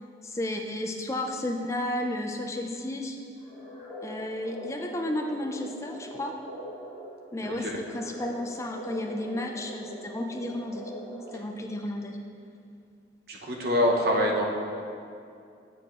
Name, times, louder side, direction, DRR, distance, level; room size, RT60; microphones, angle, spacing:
voice 1, 0.2-3.2 4.0-6.4 7.3-10.9 11.3-12.2, left 1 dB, 15° left, 3 dB, 0.4 m, -33 dB
sound 1, 3.4-11.8, equal, 10° right, 0.9 m, -42 dB
voice 2, 13.3-14.4, equal, 55° right, -1 dB, 0.8 m, -25 dB
7.6 x 6.7 x 2.4 m, 2.5 s
head